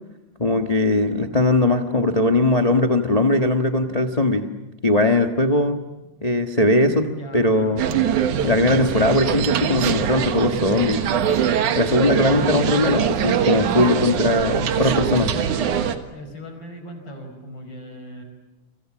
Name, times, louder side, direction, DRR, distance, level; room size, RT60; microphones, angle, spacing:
voice 1, 0.4-4.5 4.8-5.8 6.2-7.8 8.4-11.0 11.7-15.3, left 2 dB, 60° left, 5 dB, 0.4 m, -19 dB
voice 2, 6.9-7.8 14.7-18.2, equal, 40° left, 5 dB, 5.5 m, -39 dB
sound 1, 7.8-16.0, right 8 dB, 90° right, 2.9 m, -22 dB
30.0 x 24.5 x 7.5 m, 1.0 s
omnidirectional pair, 3.4 m